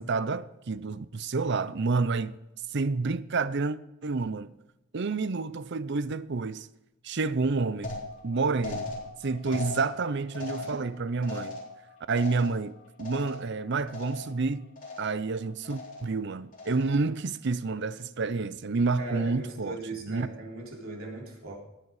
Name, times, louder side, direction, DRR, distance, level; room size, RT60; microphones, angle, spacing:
voice 1, 0.0-2.4 2.7-3.8 4.0-4.5 4.9-6.7 7.0-7.9 8.2-8.9 9.2-11.6 12.1-14.7 15.0-20.3, right 4 dB, 55° right, 0.6 m, -29 dB
sound 1, 7.8-13.6 13.9-14.4 14.8-15.3 15.6-16.2 16.5-17.1, left 2 dB, 40° left, 3.9 m, -39 dB
voice 2, 19.0-21.6, right 2 dB, 75° right, 3.8 m, -39 dB
18.5 x 7.7 x 4.9 m
head